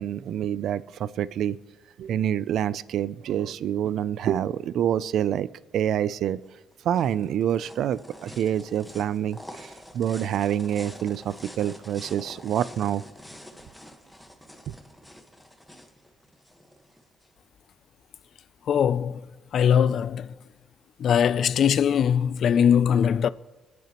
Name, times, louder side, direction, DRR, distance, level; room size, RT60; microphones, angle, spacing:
voice 1, 0.0-1.6 2.0-6.4 6.8-13.0, right 10 dB, 75° right, 0.4 m, -27 dB
sound 1, 6.4-17.3, equal, ahead, 1.4 m, -46 dB
voice 2, 18.7-19.2 19.5-20.3 21.0-23.3, left 8 dB, 65° left, 0.4 m, -21 dB
24.0 x 9.3 x 3.0 m
cardioid pair, 90°, 0 cm